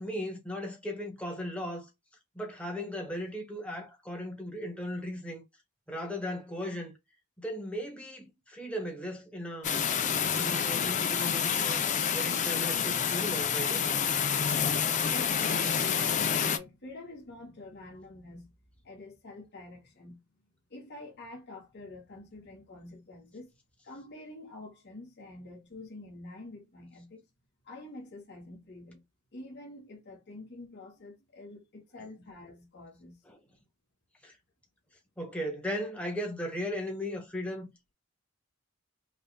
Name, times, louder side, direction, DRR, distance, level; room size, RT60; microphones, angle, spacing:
voice 1, 0.0-1.9 2.3-5.4 5.9-6.9 7.4-9.7 10.3-11.8 12.1-13.9 33.3-33.4 34.2-34.3 35.2-37.7, equal, 5° left, 1.1 m, -37 dB
sound 1, 9.6-16.6, left 7 dB, 35° left, 0.5 m, -28 dB
voice 2, 15.1-18.5 18.8-20.2 20.7-23.5 23.8-27.2 27.6-29.0 29.3-33.2, left 2 dB, 55° left, 1.4 m, -47 dB
5.3 x 2.4 x 2.2 m
head